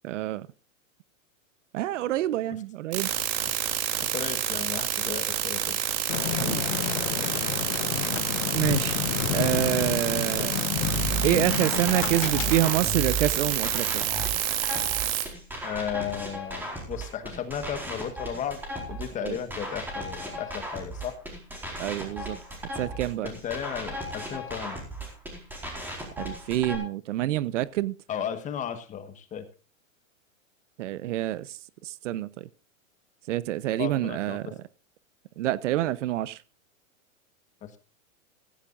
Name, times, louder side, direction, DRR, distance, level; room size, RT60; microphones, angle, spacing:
voice 1, 0.0-0.5 1.7-3.1 6.3-6.6 8.5-9.0 9.3-10.5 11.2-14.0 19.2-19.4 21.8-22.4 22.8-23.3 26.2-27.9 30.8-31.5 31.8-32.5 33.3-34.4 35.4-36.4, right 14 dB, 65° right, 0.9 m, -27 dB
sound 1, 2.9-15.2, right 11 dB, 45° right, 3.1 m, -28 dB
voice 2, 4.1-5.8 8.0-8.1 15.6-18.6 18.9-21.2 23.2-24.8 28.1-29.4 33.8-34.5 37.6-37.8, left 8 dB, 20° left, 1.4 m, -34 dB
sound 2, 6.1-12.7, left 12 dB, 75° left, 1.1 m, -30 dB
sound 3, 10.8-26.8, right 1 dB, 5° right, 4.4 m, -35 dB
16.0 x 15.0 x 2.5 m
supercardioid pair, 160°, 40 cm